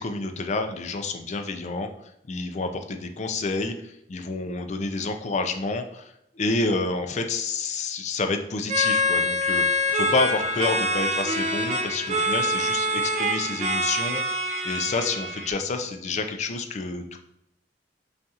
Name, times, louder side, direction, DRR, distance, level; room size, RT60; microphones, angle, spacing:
voice 1, 0.0-1.9 2.3-17.2, left 3 dB, 40° left, 6 dB, 0.4 m, -29 dB
sound 1, 8.7-15.5, left 1 dB, 40° right, 0.5 m, -25 dB
5.4 x 2.4 x 2.8 m, 0.80 s
head